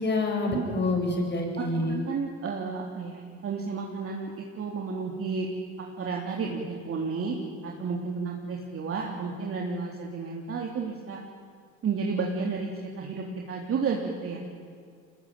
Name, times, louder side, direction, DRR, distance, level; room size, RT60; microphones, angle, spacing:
voice 1, 0.0-2.1, left 2 dB, 35° left, 3 dB, 7.6 m, -27 dB
voice 2, 1.9-5.5 5.8-7.4 7.6-11.2 11.8-12.7 13.0-14.4, right 5 dB, 45° right, 0 dB, 3.6 m, -32 dB
24.0 x 20.5 x 9.2 m, 2.1 s
hypercardioid pair, 70°, 31 cm